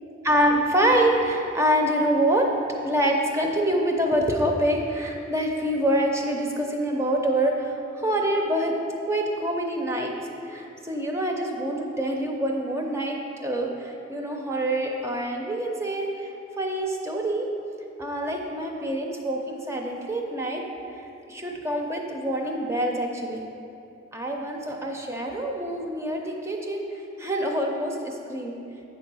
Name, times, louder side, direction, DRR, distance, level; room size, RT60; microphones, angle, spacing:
voice 1, 0.2-2.5 2.8-8.8 9.1-10.1 10.5-16.3 16.6-17.5 18.0-20.6 21.3-23.5 24.1-26.8 27.2-28.6, right 1 dB, 15° right, 1 dB, 0.7 m, -26 dB
9.1 x 4.0 x 6.1 m, 2.7 s
head